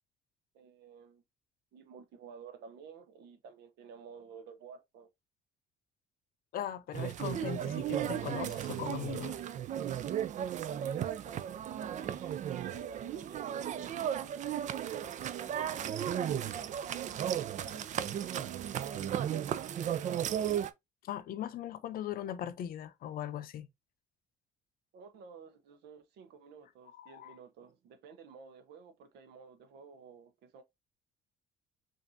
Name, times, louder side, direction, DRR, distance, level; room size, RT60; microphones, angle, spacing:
voice 1, 0.5-1.2 1.7-5.1 10.5-18.7 19.3-20.5 24.9-30.6, right 5 dB, 75° right, 0.9 m, -53 dB
voice 2, 6.5-9.4 21.0-23.7 27.0-27.4, left 10 dB, 60° left, 0.6 m, -39 dB
sound 1, 6.9-20.7, right 10 dB, 45° right, 0.4 m, -35 dB
5.2 x 2.6 x 2.6 m
cardioid pair, 110°, 17 cm